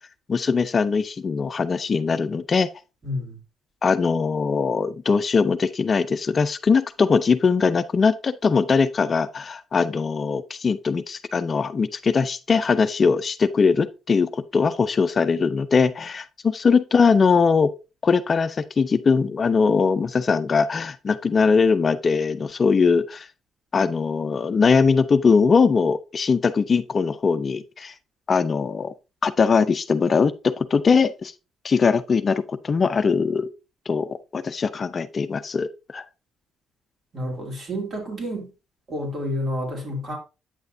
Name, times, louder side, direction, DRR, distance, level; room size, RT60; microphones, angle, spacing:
voice 1, 0.3-2.7 3.8-17.7 18.0-23.3 23.7-27.9 28.3-28.9 29.2-31.3 31.6-33.5 33.9-36.0, left 5 dB, 40° left, 0.5 m, -21 dB
voice 2, 3.0-3.4 37.1-38.5 38.9-40.2, left 1 dB, 50° right, 3.1 m, -29 dB
8.8 x 6.3 x 2.7 m
cardioid pair, 90°, 0 cm